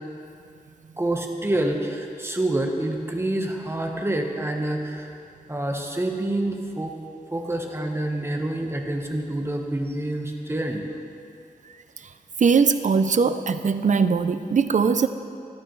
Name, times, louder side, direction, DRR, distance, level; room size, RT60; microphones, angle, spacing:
voice 1, 1.0-5.1 5.5-6.9 7.3-10.8, right 1 dB, 15° right, 2 dB, 1.1 m, -27 dB
voice 2, 12.4-15.1, right 5 dB, 55° right, 10 dB, 0.5 m, -20 dB
15.0 x 12.0 x 3.2 m, 2.5 s
wide cardioid pair, 105°, 15 cm